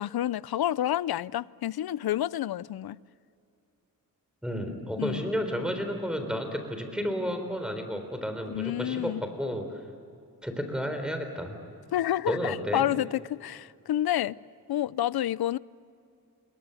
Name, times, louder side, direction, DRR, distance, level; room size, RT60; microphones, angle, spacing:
voice 1, 0.0-3.0 5.0-5.2 8.5-9.2 11.9-14.4 14.7-15.6, left 12 dB, 85° left, 0.6 m, -29 dB
voice 2, 4.4-9.6 10.4-11.6 12.3-12.9, equal, ahead, 3.8 m, -32 dB
27.0 x 22.5 x 7.9 m
wide cardioid pair, 140°, 36 cm